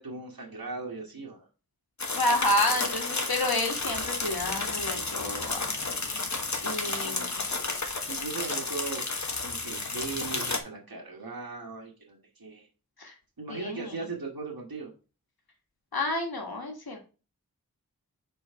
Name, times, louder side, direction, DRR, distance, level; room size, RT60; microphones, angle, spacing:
voice 1, 0.0-1.5 6.8-7.3 8.1-9.0 9.4-12.7 13.4-14.9, right 4 dB, 75° right, -1 dB, 1.6 m, -38 dB
sound 1, 2.0-10.6, left 3 dB, 50° left, 1.1 m, -32 dB
voice 2, 2.1-5.7 6.6-7.4 13.0-13.1 13.5-14.1 15.9-17.0, left 1 dB, 85° left, 2 dB, 1.6 m, -30 dB
4.6 x 4.4 x 5.5 m, 0.33 s
wide cardioid pair, 50°, 36 cm